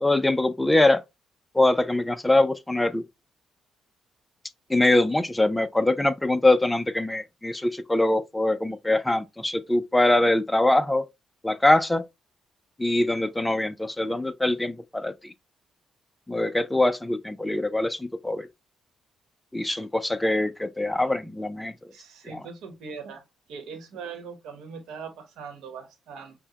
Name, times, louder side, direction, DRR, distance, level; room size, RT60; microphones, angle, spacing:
voice 1, 0.0-1.0 1.5-3.0 4.7-11.0 11.4-12.0 12.8-15.3 16.3-18.5 19.5-21.7 22.3-22.4, left 1 dB, 10° left, 0.4 m, -23 dB
voice 2, 21.9-23.2 23.5-26.3, right 5 dB, 85° right, 1.0 m, -40 dB
5.6 x 2.1 x 2.9 m
cardioid pair, 90°, 0 cm